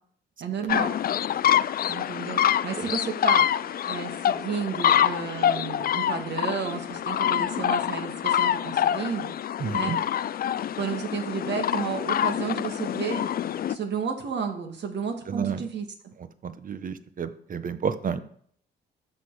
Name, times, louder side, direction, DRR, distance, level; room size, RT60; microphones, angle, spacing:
voice 1, 0.4-1.0 1.9-3.5 3.9-9.3 9.7-9.9 10.8-13.3 13.7-16.1, right 6 dB, 60° right, 4 dB, 2.0 m, -32 dB
sound 1, 0.7-13.8, left 10 dB, 50° left, 0.4 m, -26 dB
voice 2, 9.6-10.0 15.3-15.6 16.4-18.2, right 6 dB, 45° right, 12 dB, 1.0 m, -30 dB
13.5 x 6.5 x 4.8 m, 0.63 s
cardioid pair, 90°, 20 cm